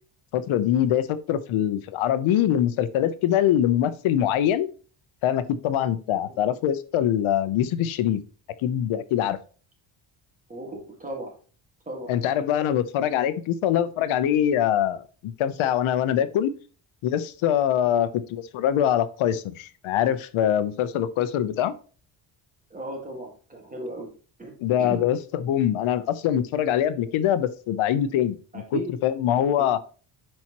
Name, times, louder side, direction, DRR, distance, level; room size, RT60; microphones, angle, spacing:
voice 1, 0.3-4.7 5.2-8.2 8.6-9.4 12.1-16.5 17.0-21.7 24.6-28.4 28.7-29.8, left 10 dB, 85° left, 0.8 m, -23 dB
voice 2, 10.5-11.3 11.9-12.1 17.8-18.0 22.7-24.1 24.4-24.5 24.8-25.0 28.5-29.0 29.4-29.7, right 2 dB, 15° right, 1.8 m, -36 dB
10.5 x 4.3 x 3.0 m
cardioid pair, 180°, 47 cm